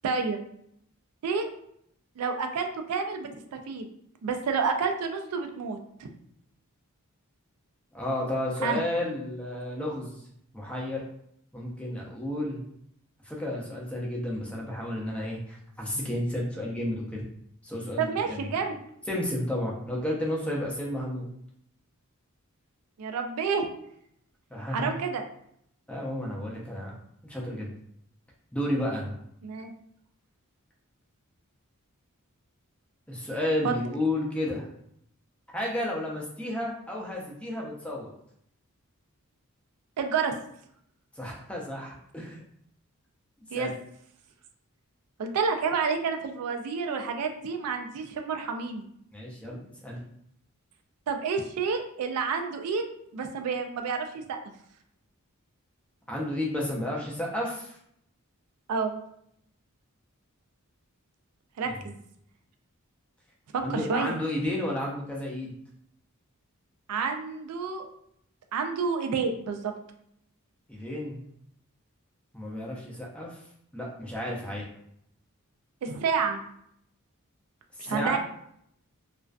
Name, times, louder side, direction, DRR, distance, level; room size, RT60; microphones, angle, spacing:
voice 1, 0.0-0.4 1.2-1.5 2.2-3.9 4.2-6.1 8.6-8.8 18.0-18.8 23.0-23.7 24.7-25.2 29.4-29.7 33.6-33.7 40.0-40.3 43.5-43.7 45.2-48.8 51.1-52.8 53.1-54.4 58.7-59.0 61.6-62.0 63.5-64.1 66.9-67.9 68.5-69.7 75.8-76.4 77.8-78.2, right 5 dB, 85° right, 5 dB, 0.4 m, -29 dB
voice 2, 7.9-10.2 10.5-11.0 11.5-12.6 13.2-17.2 17.6-18.5 19.1-21.3 24.5-24.9 25.9-27.0 27.2-27.7 28.5-29.1 33.1-34.7 35.5-38.1 41.2-42.4 43.5-43.7 49.1-50.0 56.1-57.8 61.6-61.7 63.6-65.5 70.7-71.2 72.3-73.4 73.7-74.6 77.8-78.2, left 1 dB, 5° left, -2 dB, 0.4 m, -32 dB
2.4 x 2.2 x 2.3 m, 0.71 s
head